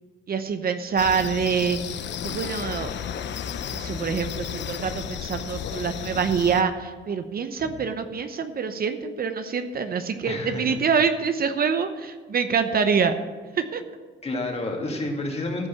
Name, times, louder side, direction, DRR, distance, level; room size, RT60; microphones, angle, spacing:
voice 1, 0.3-2.9 3.7-13.1 13.7-13.8, right 6 dB, 50° right, 8 dB, 0.9 m, -25 dB
sound 1, 1.0-6.6, left 8 dB, 65° left, 0.7 m, -33 dB
voice 2, 10.2-10.8 14.2-15.7, left 2 dB, 30° left, 1 dB, 2.4 m, -30 dB
14.5 x 5.4 x 7.1 m, 1.4 s
cardioid pair, 90°, 20 cm